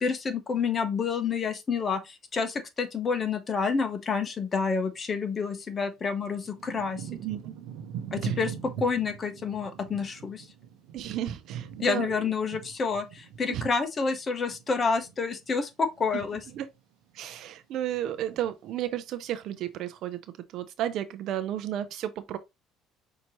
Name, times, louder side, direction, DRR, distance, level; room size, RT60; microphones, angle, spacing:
voice 1, 0.0-7.1 8.1-10.5 11.8-16.4, left 5 dB, 35° left, 0.9 m, -29 dB
Thunder / Rain, 5.2-5.3 6.0-15.5 15.8-16.7 17.2-17.6 17.8-18.7 19.3-19.4, right 8 dB, 85° right, 1.0 m, -41 dB
voice 2, 7.1-7.6 8.2-8.4 10.9-12.2 13.5-13.7 16.1-16.2 16.5-16.7 17.1-20.2 20.5-22.4, right 11 dB, 65° right, 0.6 m, -33 dB
5.7 x 2.8 x 3.0 m
supercardioid pair, 85°, 0 cm